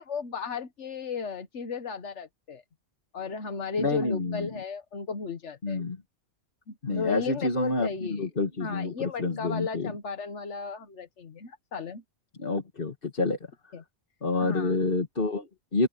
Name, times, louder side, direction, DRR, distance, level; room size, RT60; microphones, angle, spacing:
voice 1, 0.0-2.6 3.1-5.8 6.7-8.2 8.6-12.0 13.7-13.8 14.4-14.8, left 5 dB, 85° left, 1.6 m, -35 dB
voice 2, 3.8-4.5 5.6-6.0 6.8-9.9 12.4-13.4 14.2-15.9, left 3 dB, 50° left, 2.0 m, -28 dB
open air
omnidirectional pair, 1.2 m